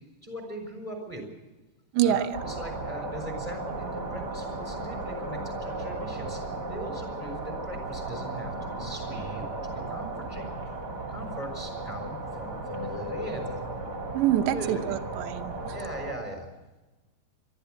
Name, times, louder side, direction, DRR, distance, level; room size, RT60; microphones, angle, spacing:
voice 1, 0.2-1.2 2.0-10.5 11.1-13.6 14.4-15.0 15.7-16.5, right 1 dB, 10° left, 4 dB, 5.7 m, -40 dB
sound 1, 2.3-16.1, right 2 dB, 25° right, 3.0 m, -35 dB
voice 2, 14.1-15.5, right 11 dB, 75° right, 6 dB, 3.1 m, -25 dB
23.5 x 14.0 x 8.1 m, 1.1 s
omnidirectional pair, 5.3 m